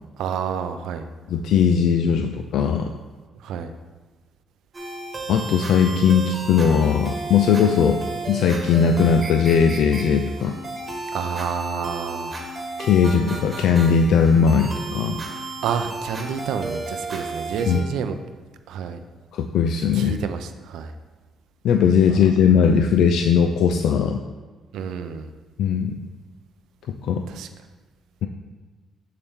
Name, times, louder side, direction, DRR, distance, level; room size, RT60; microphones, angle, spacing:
voice 1, 0.2-1.0 3.4-3.7 11.1-12.4 15.6-18.2 18.7-19.0 19.9-20.9 22.1-22.2 24.7-25.3 27.3-27.5, right 7 dB, 85° right, 8 dB, 0.4 m, -29 dB
voice 2, 1.3-2.9 5.3-8.0 8.3-10.5 12.8-15.2 17.7-17.8 19.3-20.2 21.6-24.2 25.6-26.0 26.9-27.2, left 6 dB, 80° left, 5 dB, 0.4 m, -19 dB
sound 1, 4.7-17.8, right 3 dB, 35° right, 1.5 m, -33 dB
6.9 x 6.7 x 3.6 m, 1.4 s
cardioid pair, 90°, 0 cm